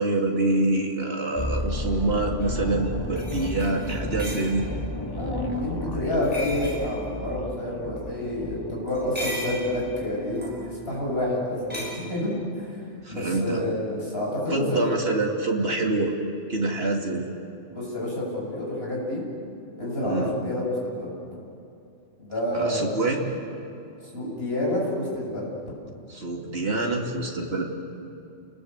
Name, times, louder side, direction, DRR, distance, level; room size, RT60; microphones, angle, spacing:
voice 1, 0.0-4.6 13.0-13.6 14.5-16.1 16.5-17.3 20.0-20.3 22.5-23.3 26.1-27.6, right 2 dB, 50° right, 0 dB, 3.0 m, -26 dB
sound 1, 1.4-11.4 11.6-11.8, left 1 dB, 15° left, 1.4 m, -34 dB
sound 2, 2.4-2.5 3.2-4.5 6.2-6.8 8.9-9.6 10.3-10.6 11.7-11.9, equal, 5° right, 6.1 m, -35 dB
voice 2, 5.1-12.8 13.1-14.8 17.7-19.2 19.8-21.1 22.2-22.9 24.0-25.5, left 1 dB, 50° left, -4 dB, 7.7 m, -28 dB
30.0 x 20.0 x 8.3 m, 2.6 s
omnidirectional pair, 1.4 m